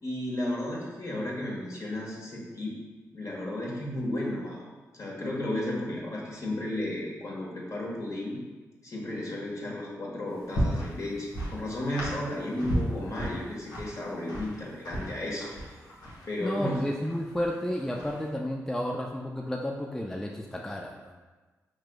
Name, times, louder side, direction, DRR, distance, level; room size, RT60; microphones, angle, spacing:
voice 1, 0.0-2.7 3.1-4.6 5.0-8.4 8.8-15.5 16.2-16.8, left 1 dB, 50° left, -3 dB, 1.3 m, -33 dB
sound 1, 10.3-18.3, equal, 70° left, 0.9 m, -35 dB
voice 2, 16.4-21.2, left 1 dB, 5° left, 0 dB, 0.4 m, -32 dB
4.9 x 3.1 x 2.2 m, 1.3 s
supercardioid pair, 40°, 7 cm